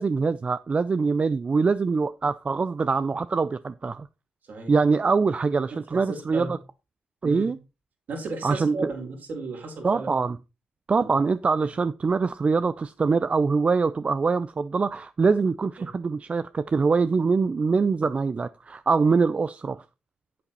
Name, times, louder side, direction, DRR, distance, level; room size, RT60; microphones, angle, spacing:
voice 1, 0.0-4.1 4.7-6.6 7.2-7.6 8.4-8.9 9.8-10.4 10.9-19.8, right 4 dB, 40° right, 0.5 m, -24 dB
voice 2, 5.7-6.5 7.2-7.5 8.1-10.1 11.0-11.1 15.8-15.9, right 3 dB, 65° right, 5.0 m, -35 dB
8.6 x 8.2 x 4.1 m
supercardioid pair, 55°, 3 cm